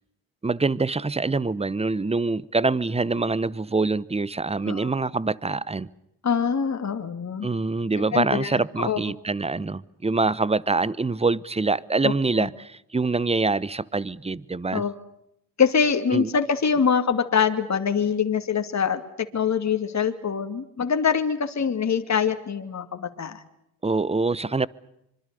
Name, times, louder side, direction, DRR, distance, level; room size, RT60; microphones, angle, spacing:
voice 1, 0.4-5.9 7.4-14.8 16.1-16.3 23.8-24.7, right 3 dB, 15° right, 1.0 m, -25 dB
voice 2, 6.2-7.5 8.0-8.5 8.8-9.0 12.0-12.5 14.7-15.0 15.6-23.4, left 6 dB, 35° left, 2.6 m, -24 dB
25.5 x 24.5 x 6.9 m
supercardioid pair, 60°, 48 cm